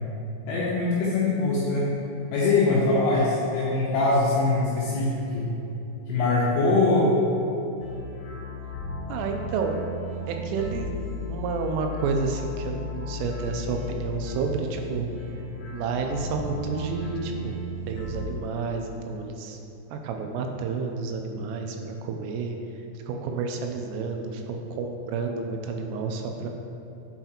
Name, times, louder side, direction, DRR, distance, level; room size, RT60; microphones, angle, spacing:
voice 1, 0.5-1.9 2.3-5.5 6.1-7.1, left 3 dB, 85° left, -7 dB, 2.6 m, -22 dB
sound 1, 7.8-18.3, left 2 dB, 65° left, 1.9 m, -35 dB
voice 2, 9.1-9.8 10.3-10.9 11.3-15.1 15.7-17.5 17.9-19.6 19.9-22.6 23.1-26.5, right 4 dB, 85° right, 3 dB, 3.0 m, -30 dB
7.9 x 4.8 x 2.8 m, 2.8 s
omnidirectional pair, 5.8 m